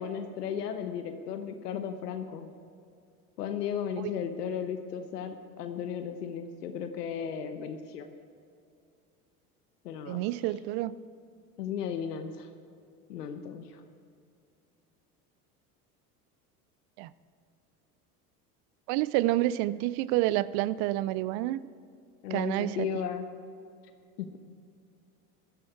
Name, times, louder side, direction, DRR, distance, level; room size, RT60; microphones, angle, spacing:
voice 1, 0.0-2.5 3.4-8.1 9.8-10.2 11.6-12.5 13.1-13.8 22.2-23.3 24.2-24.3, left 7 dB, 85° left, 7 dB, 1.1 m, -35 dB
voice 2, 10.1-10.9 17.0-17.1 18.9-21.6 22.3-22.9, right 16 dB, 55° right, 18 dB, 0.6 m, -28 dB
15.0 x 12.0 x 4.8 m, 2.5 s
hypercardioid pair, 80°, 46 cm